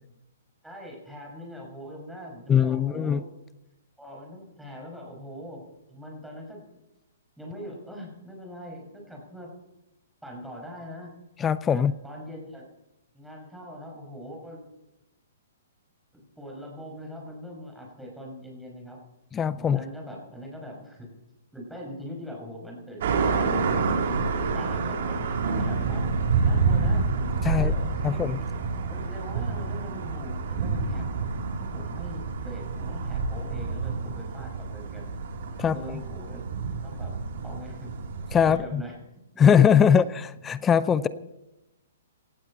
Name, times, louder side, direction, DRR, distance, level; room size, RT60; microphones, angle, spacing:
voice 1, 0.6-3.3 4.0-6.8 7.4-9.5 10.2-11.2 11.7-12.7 13.1-14.6 16.1-19.0 19.5-21.1 21.5-25.2 25.5-27.1 27.4-28.3 28.9-31.3 31.6-35.1 35.6-36.5 36.8-37.1 37.4-37.9 38.4-39.0 39.3-39.5 39.8-40.0 41.0-41.1, equal, 5° right, -1 dB, 6.1 m, -42 dB
voice 2, 2.5-3.2 11.4-11.9 19.3-19.8 27.4-27.7 28.0-28.4 35.6-35.8 38.3-38.8 39.4-40.0 40.5-41.1, left 8 dB, 15° left, 17 dB, 0.5 m, -20 dB
sound 1, 23.0-38.6, right 4 dB, 60° right, 3.4 m, -28 dB
18.0 x 15.0 x 4.3 m, 0.94 s
hypercardioid pair, 140°, 0 cm